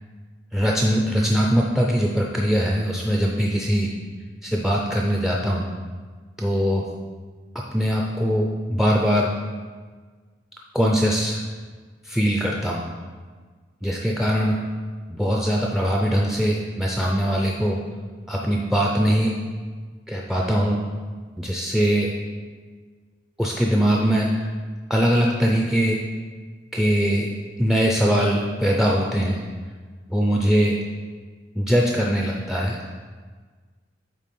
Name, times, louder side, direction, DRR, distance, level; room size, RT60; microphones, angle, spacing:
voice 1, 0.5-3.9 4.4-5.7 6.4-6.8 7.7-9.3 10.7-11.4 12.0-12.9 13.8-14.6 15.1-17.8 18.3-19.4 20.1-20.8 21.4-22.1 23.4-24.5 24.9-26.0 26.7-27.3 27.6-29.4 30.1-30.8 31.6-32.8, equal, ahead, -1 dB, 0.4 m, -21 dB
8.4 x 3.3 x 5.4 m, 1.5 s
head